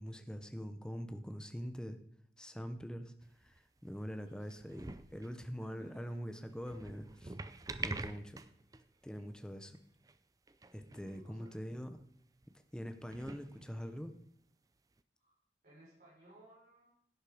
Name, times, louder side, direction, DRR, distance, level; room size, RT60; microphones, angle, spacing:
voice 1, 0.0-2.0 2.4-3.1 3.4-7.4 7.8-8.4 9.0-9.8 10.7-12.0 12.7-14.2, equal, 5° left, 8 dB, 0.9 m, -44 dB
sound 1, 3.2-3.8 4.4-5.4 6.5-8.9 9.2-9.3 9.7-9.8 10.1-10.2 10.5-11.2 11.5-11.6 12.4-12.5 13.0-14.1 15.0-15.1, right 3 dB, 20° right, 0.5 m, -46 dB
voice 2, 4.0-4.4 5.6-6.3 10.9-11.6 15.2-15.3 15.6-16.9, right 1 dB, 45° right, -8 dB, 5.0 m, -61 dB
11.0 x 9.9 x 5.1 m, 0.68 s
head